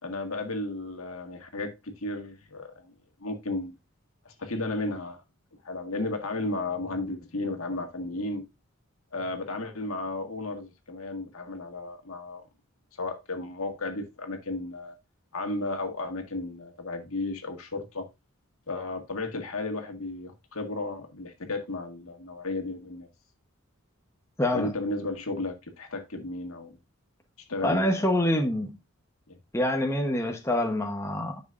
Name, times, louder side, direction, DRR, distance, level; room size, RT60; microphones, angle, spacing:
voice 1, 0.0-2.9 3.2-3.7 4.3-5.2 5.6-8.5 9.1-12.4 13.0-14.9 15.3-18.1 18.7-23.1 24.5-26.8 27.5-28.4 29.3-29.4, left 2 dB, 75° left, 1.8 m, -34 dB
voice 2, 24.4-24.7 27.6-28.7 29.5-31.4, left 1 dB, 15° left, 1.0 m, -26 dB
10.5 x 6.4 x 2.5 m
head